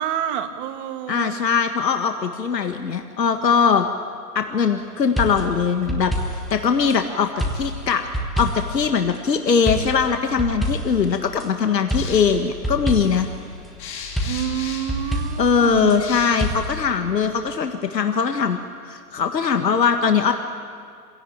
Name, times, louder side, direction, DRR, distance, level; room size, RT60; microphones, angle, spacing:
voice 1, 0.0-1.4 14.2-16.0, right 10 dB, 30° right, 8 dB, 1.5 m, -28 dB
voice 2, 1.1-3.9 4.4-13.3 15.4-18.6 18.9-20.3, left 6 dB, 85° left, 6 dB, 1.7 m, -21 dB
sound 1, 5.2-7.0 7.4-8.9 9.7-11.5 11.9-13.4 14.2-16.0 16.4-16.7, equal, ahead, 0.6 m, -27 dB
sound 2, 12.0-17.5, left 6 dB, 25° left, 3.2 m, -39 dB
25.0 x 16.5 x 8.8 m, 2.1 s
hypercardioid pair, 140°, 49 cm